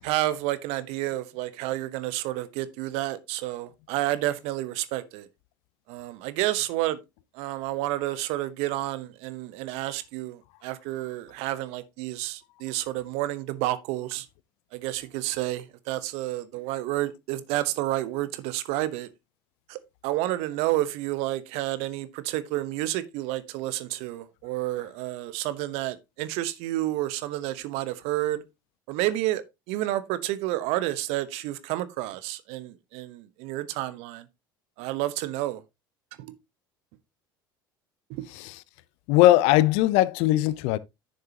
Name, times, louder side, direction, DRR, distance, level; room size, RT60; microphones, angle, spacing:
voice 1, 0.0-5.3 5.9-7.0 7.3-14.3 14.7-19.1 19.7-28.4 28.9-34.3 34.8-35.6 36.2-36.3 38.1-38.3, right 15 dB, 60° right, 1.0 m, -30 dB
voice 2, 39.1-40.8, left 15 dB, 60° left, 0.6 m, -20 dB
10.5 x 6.6 x 2.8 m
hypercardioid pair, 70°, 12 cm